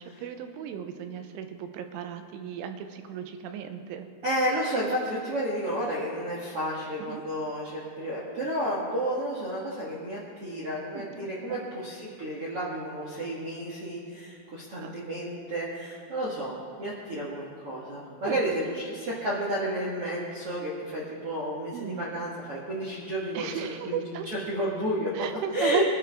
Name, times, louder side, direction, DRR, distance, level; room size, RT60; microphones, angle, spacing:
voice 1, 0.0-4.1 7.0-7.2 10.9-11.6 14.3-14.9 18.2-18.4 21.7-22.1 23.3-24.3 25.1-25.8, right 9 dB, 85° right, 7 dB, 3.2 m, -36 dB
voice 2, 4.2-25.1 25.5-25.8, right 1 dB, 65° right, -6 dB, 1.4 m, -31 dB
23.0 x 11.5 x 3.6 m, 2.4 s
omnidirectional pair, 5.6 m